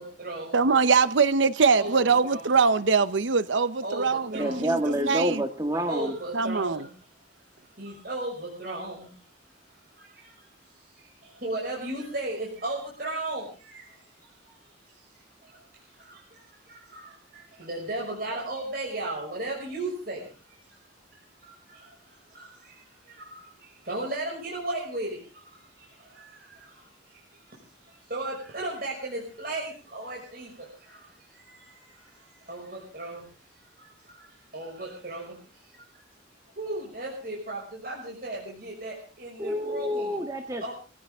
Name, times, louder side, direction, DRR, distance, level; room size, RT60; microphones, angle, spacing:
voice 1, 0.0-0.6 1.8-2.4 3.8-4.7 5.9-6.9 7.5-9.3 9.7-20.8 21.1-36.0 36.5-40.2 40.6-40.7, right 2 dB, 50° right, 5.9 m, -37 dB
voice 2, 0.5-5.4 6.3-6.8, right 5 dB, 75° right, 0.8 m, -23 dB
voice 3, 4.3-6.1 39.4-40.7, equal, 20° right, 1.6 m, -28 dB
24.5 x 16.0 x 3.6 m
head